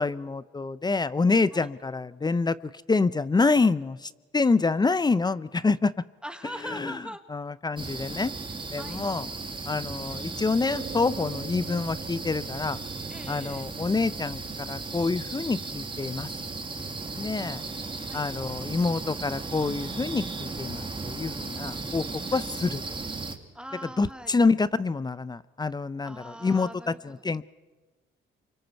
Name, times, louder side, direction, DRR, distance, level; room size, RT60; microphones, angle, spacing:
voice 1, 0.0-6.0 6.6-7.0 7.3-8.3 8.7-9.3 9.7-12.8 13.3-16.3 17.1-17.6 18.1-22.0 22.3-22.8 24.0-27.4, left 4 dB, 20° left, 17 dB, 0.6 m, -27 dB
voice 2, 6.2-7.2 8.8-9.0 13.1-13.6 18.1-18.3 22.3-22.4 23.5-24.4 26.0-27.1, equal, 5° right, 8 dB, 1.5 m, -41 dB
sound 1, 7.8-23.3, right 3 dB, 25° right, 2.1 m, -36 dB
sound 2, 10.7-19.8, right 7 dB, 50° right, 1.3 m, -46 dB
28.0 x 24.5 x 4.6 m, 1.2 s
cardioid pair, 90°, 20 cm